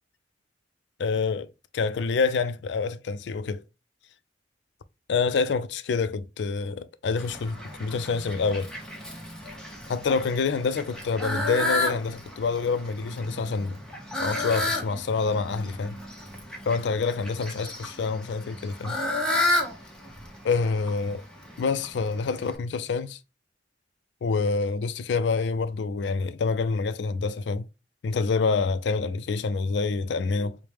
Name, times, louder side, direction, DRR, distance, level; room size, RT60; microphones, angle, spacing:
voice 1, 1.0-3.6 5.1-8.7 9.9-13.8 14.2-16.0 16.7-19.0 20.4-21.2 21.6-23.2 24.2-27.7 28.0-30.6, left 4 dB, 70° left, 0.4 m, -27 dB
Fowl, 7.2-22.6, left 1 dB, 5° left, 0.8 m, -32 dB
4.7 x 2.1 x 3.3 m
head